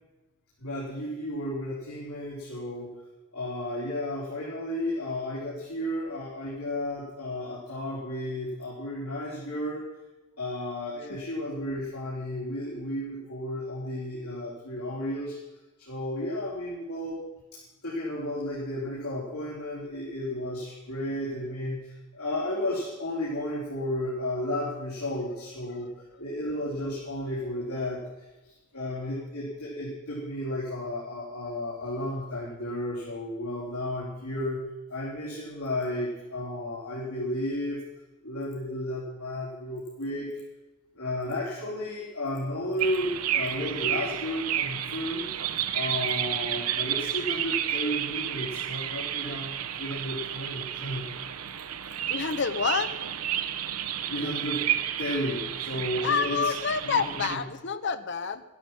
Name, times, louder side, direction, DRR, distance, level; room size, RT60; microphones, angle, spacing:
voice 1, 0.6-2.9 3.3-9.8 10.4-15.4 15.8-17.2 17.8-25.9 26.2-28.0 28.4-34.6 34.9-37.8 38.2-40.3 41.0-51.0 54.1-54.7 55.0-56.5 56.8-57.1, left 1 dB, 80° left, -7 dB, 3.9 m, -33 dB
sound 1, 42.8-57.4, right 10 dB, 80° right, 0.8 m, -31 dB
voice 2, 52.1-52.9 56.0-58.4, left 5 dB, 55° left, 11 dB, 0.8 m, -28 dB
13.0 x 12.0 x 6.0 m, 1.1 s
head